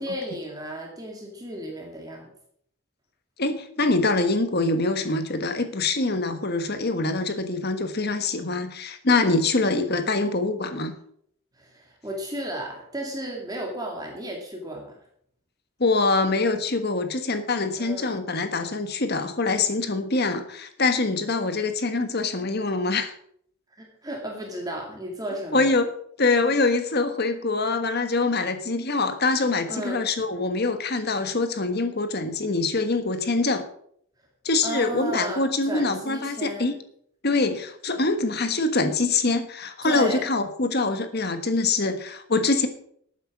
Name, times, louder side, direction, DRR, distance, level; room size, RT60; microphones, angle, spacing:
voice 1, 0.0-2.3 11.6-15.0 17.8-18.2 23.8-25.8 29.7-30.0 34.6-36.8 39.8-40.3, right 1 dB, 15° right, 0 dB, 2.2 m, -34 dB
voice 2, 3.4-10.9 15.8-23.1 25.5-25.9 26.2-33.6 34.4-36.7 37.2-42.7, left 3 dB, 50° left, 8 dB, 1.4 m, -24 dB
12.0 x 9.1 x 6.1 m, 0.66 s
head